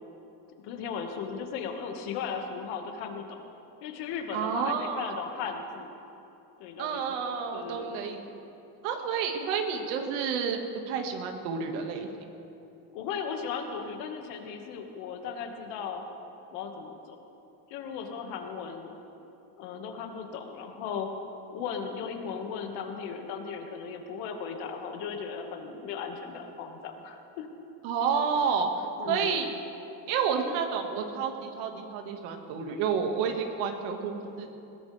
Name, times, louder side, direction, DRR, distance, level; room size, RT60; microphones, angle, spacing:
voice 1, 0.6-3.4 3.8-6.0 6.6-8.1 12.9-16.0 16.5-17.2 17.7-18.9 19.6-21.1 21.5-27.5 29.0-29.5, left 6 dB, 70° left, 3 dB, 1.9 m, -37 dB
voice 2, 4.3-5.2 6.8-8.2 8.8-10.6 10.9-12.1 27.8-28.7 29.0-29.5 30.1-34.5, right 6 dB, 85° right, 4 dB, 2.0 m, -30 dB
21.0 x 17.5 x 3.5 m, 2.9 s
cardioid pair, 145°, 41 cm